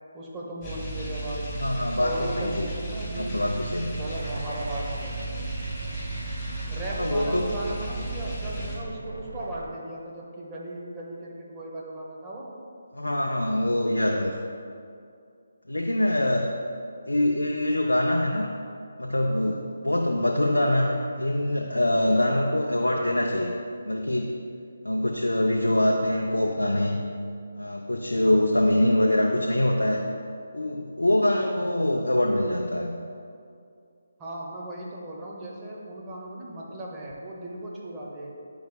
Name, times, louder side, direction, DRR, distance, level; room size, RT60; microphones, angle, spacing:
voice 1, 0.1-1.5 2.0-3.5 3.9-5.3 6.7-12.5 34.2-38.3, right 1 dB, 15° right, -4 dB, 0.9 m, -36 dB
sound 1, 0.6-8.8, right 2 dB, 15° left, 1.5 m, -34 dB
voice 2, 1.6-2.7 3.2-3.9 7.0-7.5 12.9-14.4 15.7-16.5 17.1-18.5 19.0-23.5 23.8-24.3 24.8-27.0 27.6-30.0 30.5-32.9, left 1 dB, 85° left, 0 dB, 0.5 m, -24 dB
sound 2, 4.0-9.6, right 2 dB, 75° right, 0.7 m, -40 dB
9.1 x 4.7 x 2.2 m, 2.4 s
figure-of-eight pair, 150°, 0 cm